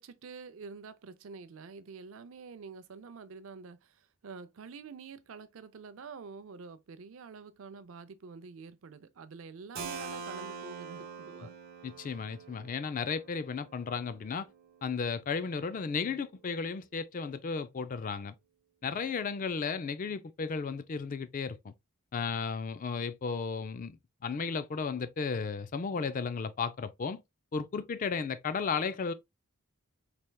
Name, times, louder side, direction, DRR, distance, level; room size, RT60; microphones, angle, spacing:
voice 1, 0.0-11.6, right 5 dB, 60° right, 0.4 m, -47 dB
Keyboard (musical), 9.8-15.3, right 5 dB, 45° right, 0.9 m, -45 dB
voice 2, 11.8-14.5 14.8-18.3 18.8-21.7 22.1-24.0 24.2-27.2 27.5-29.1, left 5 dB, 35° left, 0.3 m, -34 dB
4.3 x 3.3 x 2.2 m
head